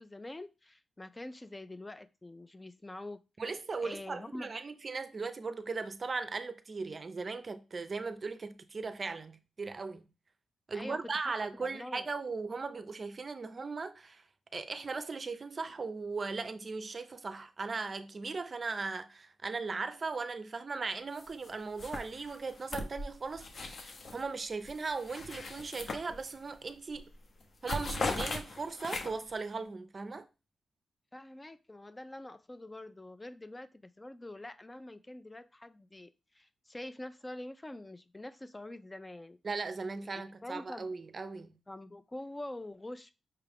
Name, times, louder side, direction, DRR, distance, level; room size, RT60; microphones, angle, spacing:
voice 1, 0.0-3.2 3.8-4.5 10.7-12.1 31.1-39.4 40.1-40.9 41.7-43.1, left 1 dB, 20° left, 0.3 m, -45 dB
voice 2, 3.4-10.1 10.7-14.2 14.5-27.2 27.6-30.3 39.4-41.6, right 4 dB, 40° right, 0.5 m, -38 dB
sound 1, 21.2-21.5 21.8-24.2 24.6-26.5 26.9-27.1 27.4-29.3, left 3 dB, 55° left, 0.8 m, -39 dB
5.6 x 2.4 x 3.4 m
cardioid pair, 85°, 0 cm